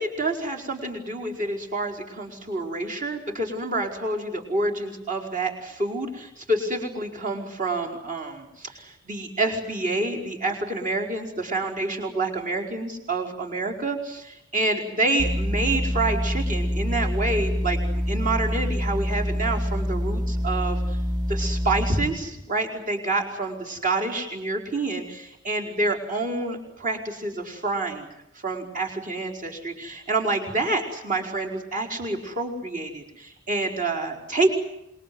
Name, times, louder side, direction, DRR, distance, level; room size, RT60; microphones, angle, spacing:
voice 1, 0.0-21.0 21.3-28.1 28.4-34.5, right 2 dB, 40° right, 2 dB, 5.0 m, -28 dB
sound 1, 15.2-22.1, equal, 20° right, 5.8 m, -26 dB
27.0 x 22.0 x 9.5 m, 0.83 s
head